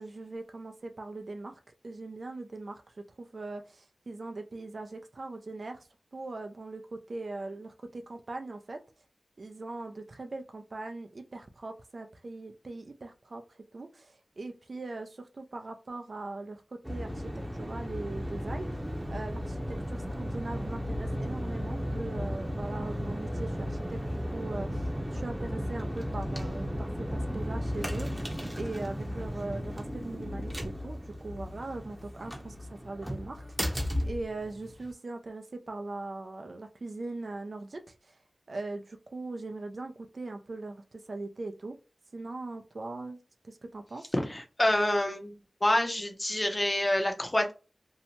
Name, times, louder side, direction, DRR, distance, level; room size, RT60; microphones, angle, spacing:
voice 1, 0.0-8.8 9.4-16.6 16.9-18.7 19.1-19.6 19.9-33.4 34.0-38.2 38.5-41.8 42.1-43.2 43.4-44.1, right 2 dB, 65° right, 5 dB, 0.3 m, -40 dB
sound 1, 16.8-34.9, equal, 15° right, 0.7 m, -35 dB
voice 2, 44.1-47.5, left 1 dB, 30° left, 4 dB, 0.7 m, -27 dB
2.7 x 2.1 x 2.8 m, 0.32 s
cardioid pair, 45°, 0 cm